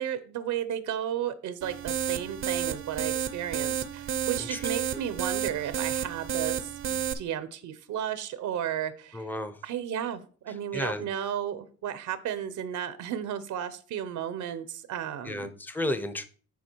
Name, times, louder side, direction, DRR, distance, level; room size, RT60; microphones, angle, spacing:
voice 1, 0.0-9.3 9.6-15.5, right 10 dB, 75° right, 0.8 m, -33 dB
sound 1, 1.6-7.1, right 9 dB, 45° right, 0.6 m, -31 dB
voice 2, 9.1-9.6 10.7-11.0 15.2-16.2, left 1 dB, 5° left, 0.7 m, -32 dB
9.4 x 3.9 x 4.6 m
cardioid pair, 90°, 30 cm